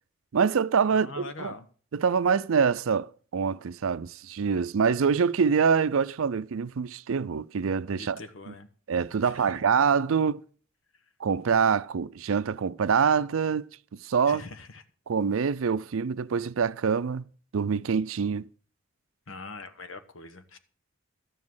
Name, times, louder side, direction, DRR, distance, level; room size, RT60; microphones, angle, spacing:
voice 1, 0.3-1.1 1.4-1.5 1.9-8.2 8.9-10.4 11.2-13.7 14.0-14.4 15.1-17.3 17.5-18.5, right 6 dB, 85° right, 0.5 m, -25 dB
voice 2, 0.9-1.7 8.0-8.7 9.2-9.6 14.2-14.8 19.3-20.6, left 3 dB, 75° left, 1.2 m, -42 dB
12.5 x 7.5 x 6.2 m
head